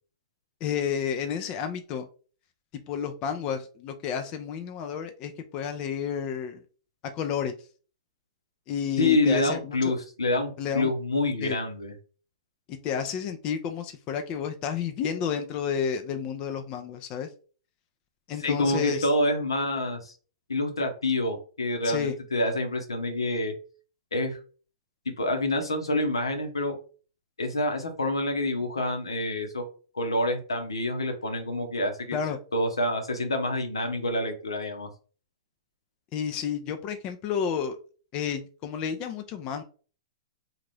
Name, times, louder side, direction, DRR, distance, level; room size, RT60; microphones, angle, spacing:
voice 1, 0.6-2.1 2.9-6.6 7.1-7.5 8.7-10.0 10.6-10.9 11.4-11.6 12.7-17.3 18.3-19.1 21.8-22.1 32.1-32.4 36.1-37.8 38.1-39.6, left 7 dB, 35° left, 6 dB, 0.5 m, -31 dB
voice 2, 9.0-11.9 18.4-20.1 20.5-23.5 24.1-24.4 25.2-26.7 27.4-29.6 29.9-32.2 32.5-34.9, left 1 dB, 90° left, 5 dB, 0.9 m, -27 dB
2.6 x 2.4 x 3.3 m, 0.38 s
hypercardioid pair, 120°, 3 cm